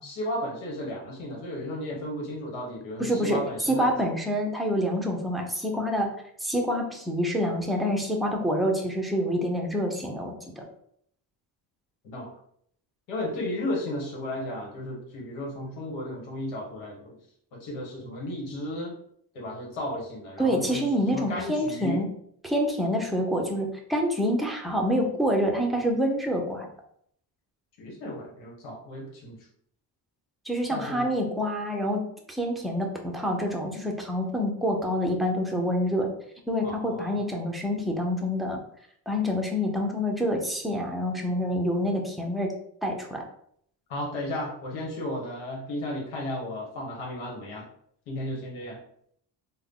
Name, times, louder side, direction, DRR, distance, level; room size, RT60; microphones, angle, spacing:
voice 1, 0.0-3.9 12.0-12.3 13.1-17.1 17.5-18.9 19.3-20.8 21.1-22.0 27.8-29.4 30.7-31.1 36.6-37.1 43.9-47.7 48.1-48.8, left 1 dB, 85° left, -2 dB, 1.4 m, -34 dB
voice 2, 3.0-6.1 6.4-10.6 20.4-22.1 22.4-26.7 30.5-36.1 36.5-38.6 39.1-42.5 42.8-43.2, equal, ahead, 1 dB, 0.5 m, -27 dB
3.6 x 2.1 x 3.6 m, 0.67 s
cardioid pair, 110°, 44 cm